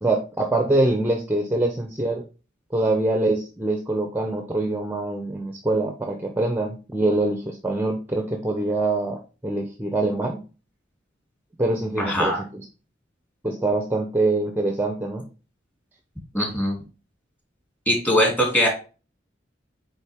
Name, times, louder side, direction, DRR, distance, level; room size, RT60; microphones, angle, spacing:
voice 1, 0.0-2.2 2.7-9.2 9.4-10.4 11.6-12.3 13.4-15.2, right 2 dB, 10° right, 4 dB, 0.8 m, -24 dB
voice 2, 12.0-12.4 16.3-16.8 17.9-18.7, equal, 10° left, -1 dB, 2.7 m, -21 dB
8.9 x 3.8 x 3.6 m, 0.33 s
head